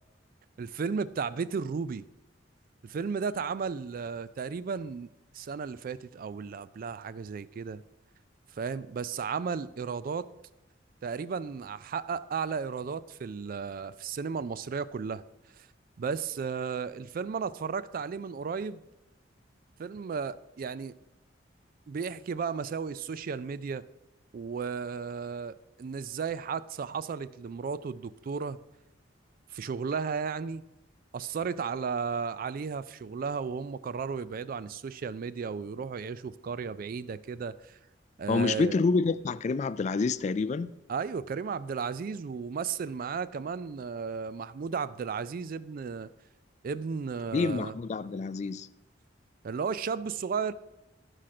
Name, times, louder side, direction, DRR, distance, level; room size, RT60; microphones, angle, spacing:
voice 1, 0.6-2.1 2.8-5.1 5.3-7.8 8.6-10.3 11.0-15.2 15.6-15.7 16.0-18.8 19.8-20.9 21.9-23.8 24.3-28.6 29.5-30.6 31.1-37.8 38.2-38.8 40.9-46.1 46.6-47.7 49.4-50.5, right 5 dB, 50° right, 0.3 m, -34 dB
voice 2, 38.3-40.7 47.3-48.7, left 4 dB, 40° left, 0.3 m, -27 dB
12.0 x 5.0 x 5.9 m
head